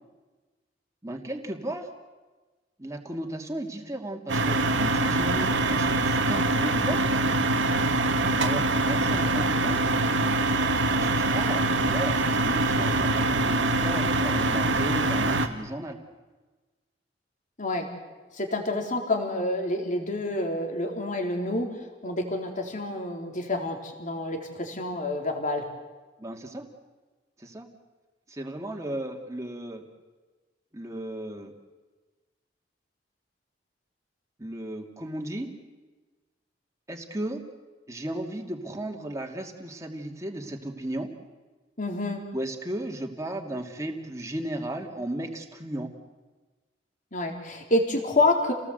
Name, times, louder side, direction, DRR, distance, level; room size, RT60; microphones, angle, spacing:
voice 1, 1.0-1.9 2.8-7.0 8.4-9.9 10.9-16.0 26.2-26.7 27.4-27.7 28.3-29.8 30.7-31.5 34.4-35.5 36.9-37.4 37.9-41.1 42.3-45.9, right 1 dB, 15° right, 2 dB, 2.6 m, -35 dB
sound 1, 4.3-15.5, right 2 dB, 90° right, 2.0 m, -24 dB
voice 2, 18.3-21.8 22.0-25.6 41.8-42.2 47.1-48.5, left 2 dB, 45° left, 3 dB, 3.7 m, -28 dB
29.5 x 18.5 x 8.1 m, 1.3 s
head